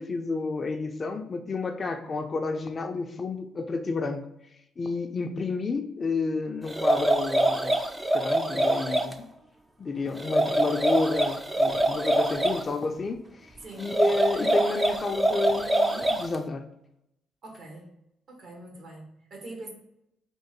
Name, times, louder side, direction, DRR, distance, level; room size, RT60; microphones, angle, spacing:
voice 1, 0.0-4.3 4.8-7.8 8.1-9.3 9.8-16.7, left 3 dB, 40° left, 5 dB, 0.5 m, -30 dB
sound 1, 6.7-9.1 10.2-12.6 13.8-16.4, right 1 dB, 15° right, 0.5 m, -25 dB
voice 2, 17.4-17.9 18.3-19.7, right 2 dB, 60° right, 0 dB, 1.5 m, -43 dB
3.7 x 2.5 x 4.4 m, 0.81 s
cardioid pair, 90°, 0 cm